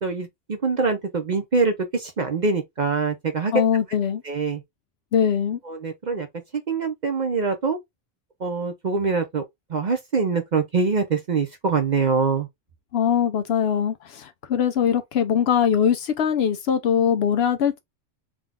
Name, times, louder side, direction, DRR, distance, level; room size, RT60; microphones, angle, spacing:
voice 1, 0.0-3.5 4.2-4.6 5.7-6.3 6.7-7.8 8.4-9.4 9.7-12.5, right 4 dB, 50° right, 0.6 m, -24 dB
voice 2, 3.5-4.2 5.1-5.6 12.9-17.8, left 8 dB, 65° left, 0.7 m, -22 dB
3.8 x 2.3 x 3.4 m
omnidirectional pair, 1.3 m